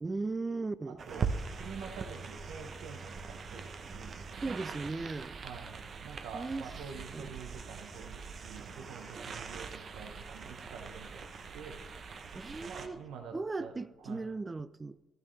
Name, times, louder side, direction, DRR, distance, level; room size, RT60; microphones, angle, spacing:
voice 1, 0.0-1.0 4.4-5.4 6.3-6.7 6.9-7.3 12.3-13.0 13.3-15.0, right 3 dB, 25° right, 0.4 m, -37 dB
voice 2, 0.9-4.2 5.4-11.2 11.5-11.8 12.7-13.7 14.0-14.3, right 5 dB, 90° right, 1.0 m, -47 dB
sound 1, 1.0-12.9, right 5 dB, 50° right, 0.8 m, -42 dB
12.5 x 12.0 x 3.3 m
cardioid pair, 90°, 0 cm